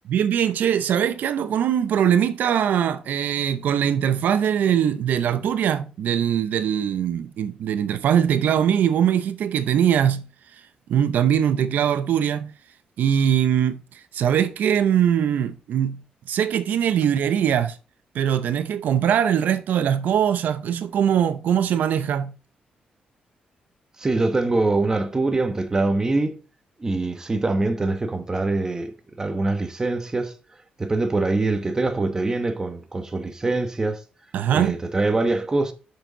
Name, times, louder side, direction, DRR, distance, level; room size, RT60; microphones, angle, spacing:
voice 1, 0.1-10.2 10.9-12.5 13.0-16.0 16.3-17.8 18.1-22.3 34.3-34.8, right 9 dB, 80° right, 0.7 m, -21 dB
voice 2, 24.0-26.4 26.8-30.3 30.8-34.0 34.5-35.7, right 2 dB, 20° right, 1.1 m, -24 dB
6.6 x 6.4 x 3.9 m
cardioid pair, 125°, 3 cm